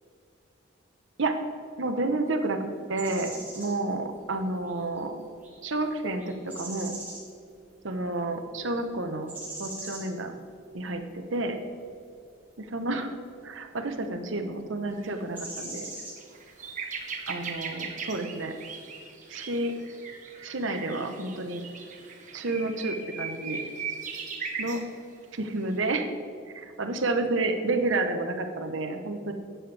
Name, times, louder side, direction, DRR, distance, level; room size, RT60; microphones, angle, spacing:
voice 1, 1.8-5.2 5.6-6.9 7.8-9.3 9.6-10.3 10.7-11.6 12.6-13.1 13.4-15.9 17.3-18.5 19.3-19.7 20.4-21.6 22.3-23.6 24.6-24.8 25.3-26.1 26.5-29.3, right 2 dB, 75° right, 6 dB, 1.0 m, -30 dB
sound 1, 3.0-3.7 4.7-5.0 5.4-5.7 6.2-7.3 9.3-10.1 15.3-16.2, right 2 dB, 10° right, 2.6 m, -40 dB
sound 2, 15.0-15.1 15.6-15.7 16.0-24.8 25.6-25.8, right 5 dB, 40° right, 1.1 m, -38 dB
12.0 x 8.7 x 3.4 m, 2.5 s
head